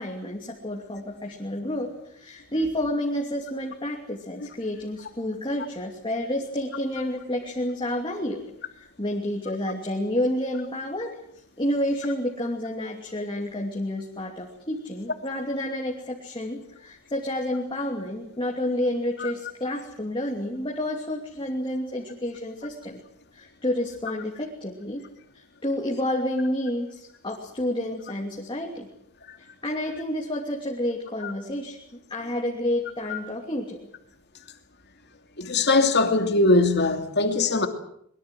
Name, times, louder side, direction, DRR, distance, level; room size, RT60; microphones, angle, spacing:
voice 1, 0.0-8.4 8.8-11.2 11.6-23.0 23.3-25.0 25.3-28.9 29.4-31.8 32.1-33.9, left 1 dB, 25° left, 2.8 m, -30 dB
voice 2, 35.4-37.7, left 2 dB, 50° left, 2.8 m, -21 dB
24.0 x 22.0 x 7.7 m
head